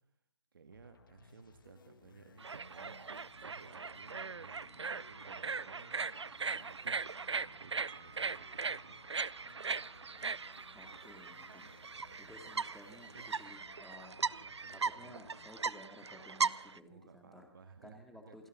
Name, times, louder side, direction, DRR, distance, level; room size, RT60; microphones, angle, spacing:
voice 1, 0.5-3.0 3.4-6.0 6.4-9.0 11.6-12.2 13.1-13.3 14.4-15.2 16.9-18.3, right 5 dB, 50° right, 7 dB, 1.8 m, -58 dB
sound 1, 0.7-15.5, left 5 dB, 50° left, 2.0 m, -62 dB
sound 2, 2.4-16.8, right 5 dB, 75° right, 0.6 m, -39 dB
Wind chime, 7.9-13.9, right 6 dB, 30° right, 0.7 m, -65 dB
voice 2, 10.7-11.7 12.2-14.3 14.7-17.5 17.8-18.5, left 1 dB, ahead, 3 dB, 2.2 m, -55 dB
28.5 x 12.5 x 3.7 m, 0.68 s
figure-of-eight pair, 150°, 15 cm